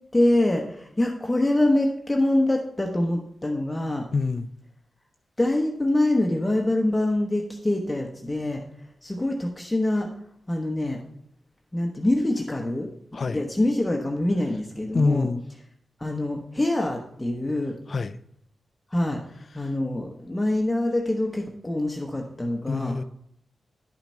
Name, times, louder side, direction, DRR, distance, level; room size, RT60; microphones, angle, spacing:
voice 1, 0.1-4.1 5.4-8.6 9.0-10.1 10.5-11.0 11.7-12.9 13.3-15.3 16.0-17.8 18.9-19.2 19.5-22.9, left 1 dB, 15° left, 1.0 m, -25 dB
voice 2, 4.1-4.5 13.1-13.5 14.9-15.4 17.9-18.2 19.6-19.7 22.7-23.0, left 4 dB, 50° left, 0.4 m, -26 dB
10.5 x 5.8 x 4.3 m
wide cardioid pair, 90°, 0 cm